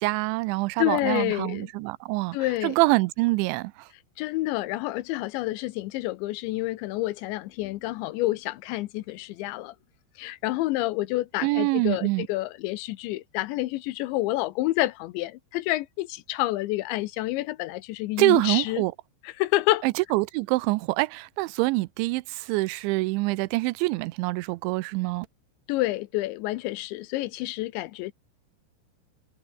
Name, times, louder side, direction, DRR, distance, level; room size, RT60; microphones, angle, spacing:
voice 1, 0.0-2.4 2.6-3.9 11.4-12.3 18.2-18.9 19.8-25.3, right 22 dB, 85° right, 2.9 m, -25 dB
voice 2, 0.8-1.7 2.3-2.8 4.2-9.7 10.2-18.8 19.2-19.9 25.7-28.1, left 18 dB, 85° left, 3.1 m, -28 dB
omnidirectional pair, 5.4 m